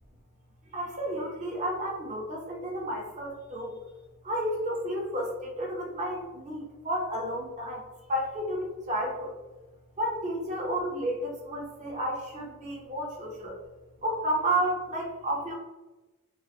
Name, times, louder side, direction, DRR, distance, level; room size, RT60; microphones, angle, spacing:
voice 1, 0.7-3.7 4.2-7.8 8.1-9.3 10.0-13.6 14.0-15.5, right 1 dB, 30° right, -1 dB, 0.5 m, -31 dB
2.4 x 2.0 x 2.5 m, 1.1 s
head